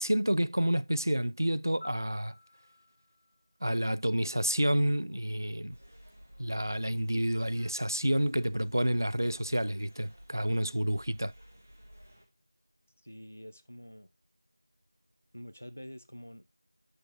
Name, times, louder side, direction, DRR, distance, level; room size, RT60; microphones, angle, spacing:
voice 1, 0.0-2.3 3.6-5.8 6.4-11.3, right 1 dB, 55° right, 0.4 m, -29 dB
Piano, 1.8-4.7 12.9-13.1, left 2 dB, 45° left, 2.0 m, -55 dB
sound 1, 5.7-12.3, equal, 20° right, 0.9 m, -55 dB
voice 2, 13.0-14.1 15.3-16.6, equal, 25° left, 0.4 m, -47 dB
8.5 x 6.2 x 3.1 m
figure-of-eight pair, 175°, 2 cm